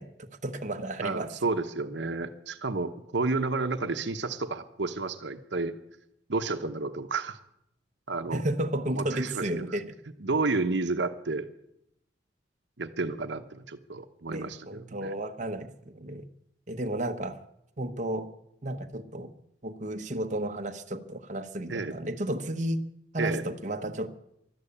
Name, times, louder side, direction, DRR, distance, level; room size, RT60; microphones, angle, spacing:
voice 1, 0.0-1.3 8.3-9.9 14.3-16.2 16.7-17.4 17.8-18.3 18.6-19.3 19.6-22.8 23.1-24.1, right 1 dB, 45° right, 4 dB, 1.0 m, -33 dB
voice 2, 1.0-5.8 6.3-7.4 8.1-8.4 8.9-9.7 10.2-11.5 12.8-15.1 21.7-22.0 23.2-23.4, right 3 dB, 70° right, 9 dB, 1.0 m, -31 dB
13.5 x 12.5 x 8.6 m, 0.79 s
head